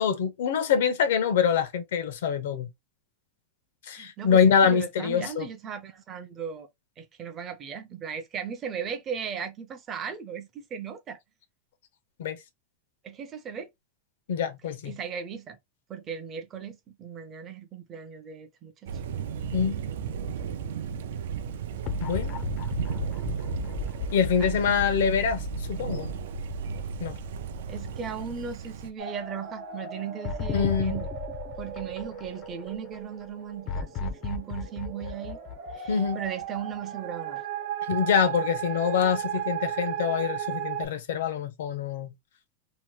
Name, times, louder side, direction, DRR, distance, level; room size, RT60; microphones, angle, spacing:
voice 1, 0.0-2.7 3.9-5.5 12.2-12.4 14.3-14.9 19.5-19.8 22.0-22.4 24.1-26.1 27.0-27.1 30.5-30.9 35.9-36.2 37.9-42.1, left 7 dB, 80° left, 0.7 m, -25 dB
voice 2, 4.0-6.7 7.0-11.2 13.0-13.7 14.8-15.6 15.9-19.0 24.4-24.8 27.7-31.1 31.6-35.4 35.7-37.4, right 7 dB, 20° right, 0.5 m, -37 dB
Thunder, 18.9-28.9, right 7 dB, 80° right, 0.4 m, -35 dB
sound 1, 21.9-28.2 28.6-28.7 30.2-32.7 33.7-36.4, left 4 dB, 35° left, 0.4 m, -35 dB
sound 2, 29.0-40.9, right 9 dB, 65° right, 0.9 m, -36 dB
2.8 x 2.1 x 3.0 m
supercardioid pair, 170°, 0 cm